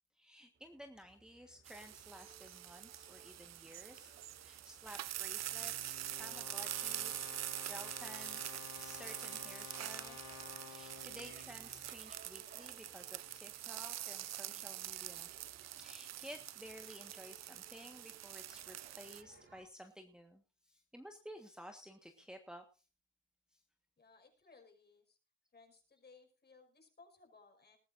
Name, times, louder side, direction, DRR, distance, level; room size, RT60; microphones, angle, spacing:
voice 1, 0.2-7.2 7.6-15.3 15.8-22.6, equal, 5° right, 4 dB, 1.5 m, -54 dB
sound 1, 0.6-19.6, right 4 dB, 40° right, 3.3 m, -64 dB
sound 2, 1.6-19.2, right 13 dB, 60° right, 0.6 m, -45 dB
sound 3, 4.9-12.0, left 8 dB, 70° left, 2.8 m, -53 dB
voice 2, 24.0-25.2 25.5-27.8, left 4 dB, 35° left, 4 dB, 5.7 m, -62 dB
20.0 x 14.0 x 2.6 m, 0.32 s
cardioid pair, 90°, 30 cm